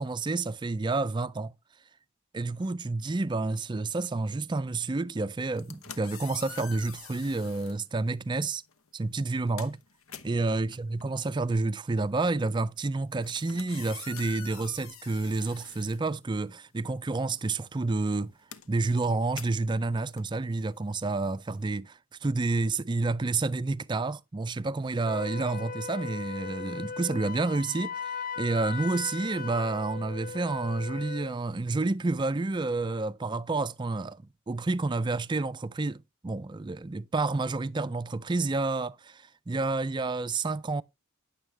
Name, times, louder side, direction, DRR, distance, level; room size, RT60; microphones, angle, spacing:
voice 1, 0.0-1.5 2.3-8.6 8.9-9.8 10.2-18.3 18.7-40.8, right 3 dB, 20° right, 0.4 m, -29 dB
sound 1, 5.4-7.8 8.7-8.9 9.2-16.7 17.0-21.7, left 8 dB, 85° left, 1.0 m, -47 dB
Wind instrument woodwind instrument, 25.0-31.4, left 5 dB, 40° left, 0.4 m, -38 dB
10.5 x 7.3 x 3.3 m
head